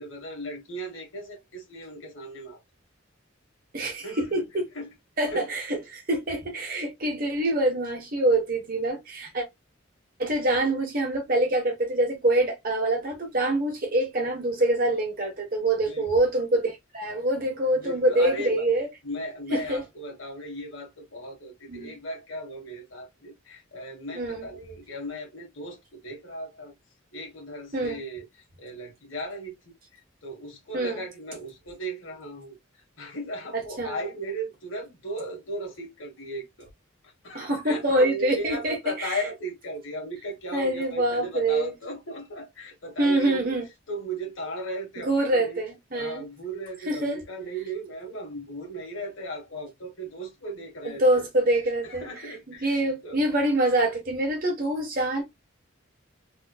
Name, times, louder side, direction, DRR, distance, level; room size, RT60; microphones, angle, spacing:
voice 1, 0.0-2.6 4.0-4.5 4.7-4.9 5.3-5.5 10.5-10.6 15.8-16.1 17.7-18.7 19.0-26.7 27.1-36.7 37.0-43.5 43.9-45.6 45.9-51.3 51.8-53.2, right 1 dB, 70° left, 1.5 m, -37 dB
voice 2, 3.7-4.7 5.2-9.4 10.2-18.9 19.5-19.8 21.7-21.9 24.2-24.4 27.7-28.0 30.7-31.0 33.8-34.0 37.3-38.8 39.0-39.2 40.5-41.7 43.0-43.7 45.1-46.2 46.9-47.2 50.8-52.0 52.6-55.2, right 1 dB, 45° right, 1.4 m, -25 dB
3.5 x 3.1 x 2.3 m
head